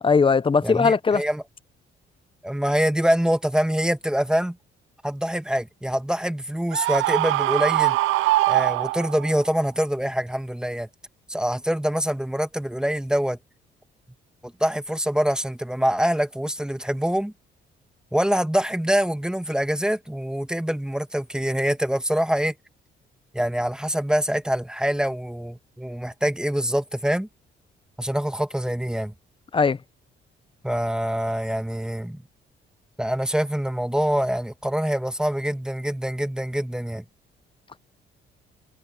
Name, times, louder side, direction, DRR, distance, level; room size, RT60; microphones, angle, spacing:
voice 1, 0.0-1.2 29.5-29.8, left 5 dB, 25° left, 0.7 m, -19 dB
voice 2, 0.6-1.4 2.4-4.6 5.0-8.0 8.5-10.9 11.3-13.4 14.6-17.3 18.1-22.5 23.3-27.3 28.0-29.1 30.6-32.2 33.0-37.0, equal, 5° right, 1.8 m, -25 dB
Screaming, 6.7-9.4, right 17 dB, 85° right, 0.5 m, -22 dB
cardioid pair, 90°, 20 cm